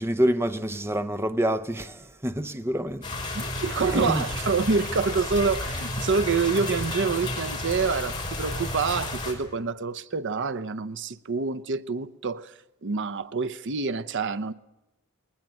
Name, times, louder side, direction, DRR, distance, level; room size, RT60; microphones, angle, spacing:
voice 1, 0.0-4.2, right 1 dB, 10° right, 0.7 m, -28 dB
sound 1, 3.0-9.3, left 2 dB, 20° left, 5.7 m, -32 dB
voice 2, 3.3-12.5 12.8-14.5, right 4 dB, 55° right, 0.7 m, -27 dB
21.0 x 20.0 x 9.1 m
head